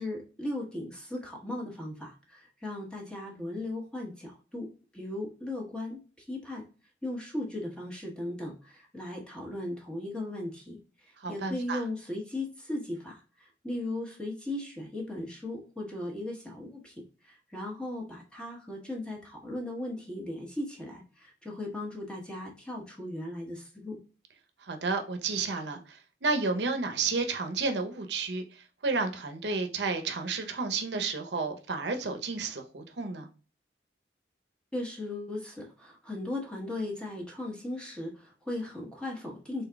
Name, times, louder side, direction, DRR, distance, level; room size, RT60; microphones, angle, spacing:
voice 1, 0.0-4.7 4.9-6.7 7.0-24.0 34.7-39.6, left 1 dB, 5° left, 1.0 m, -37 dB
voice 2, 11.2-11.8 24.6-33.3, right 4 dB, 80° right, 0.7 m, -31 dB
3.9 x 3.8 x 2.2 m
head